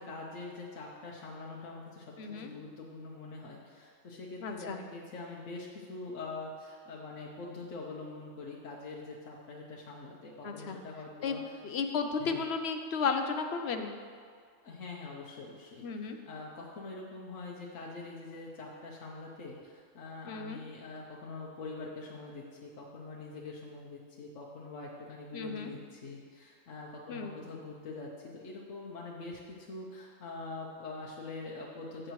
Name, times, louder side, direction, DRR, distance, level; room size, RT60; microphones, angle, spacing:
voice 1, 0.0-11.6 12.2-12.4 14.6-32.1, left 3 dB, 75° left, -3 dB, 1.3 m, -44 dB
voice 2, 2.2-2.5 4.4-4.8 10.4-10.8 11.2-11.4 11.6-13.9 15.8-16.2 20.3-20.6 25.3-25.7 27.1-27.3, left 5 dB, 60° left, 5 dB, 1.0 m, -33 dB
14.0 x 7.7 x 3.2 m, 2.1 s
omnidirectional pair, 1.3 m